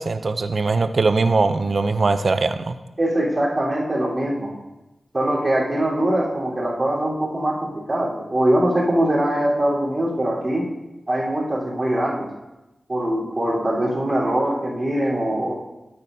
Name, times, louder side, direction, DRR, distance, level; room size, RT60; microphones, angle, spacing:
voice 1, 0.0-2.8, right 3 dB, 60° right, 10 dB, 0.5 m, -21 dB
voice 2, 3.0-4.5 5.1-10.6 11.1-12.3 12.9-15.5, right 1 dB, 35° right, -6 dB, 3.9 m, -22 dB
13.0 x 8.7 x 2.7 m, 1.0 s
cardioid pair, 60°, 0 cm